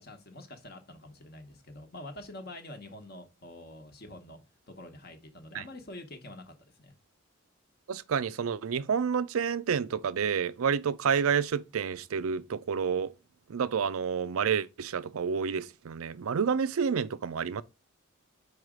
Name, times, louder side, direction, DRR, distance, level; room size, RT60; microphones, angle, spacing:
voice 1, 0.0-4.4 4.7-6.9, left 1 dB, 45° left, 1.0 m, -46 dB
voice 2, 7.9-13.1 13.5-17.6, right 6 dB, 80° right, 0.4 m, -29 dB
4.8 x 4.8 x 4.9 m
head